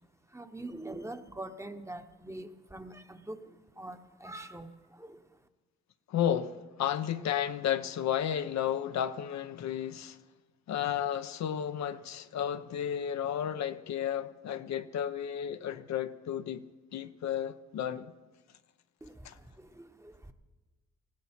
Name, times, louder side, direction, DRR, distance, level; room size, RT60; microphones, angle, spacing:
voice 1, 0.3-5.2 19.0-20.3, right 1 dB, 10° right, 1.0 m, -44 dB
voice 2, 6.1-10.2 10.7-16.6 16.9-18.1 19.2-19.4, left 9 dB, 65° left, 0.7 m, -33 dB
19.0 x 16.0 x 4.4 m
cardioid pair, 90°, 30 cm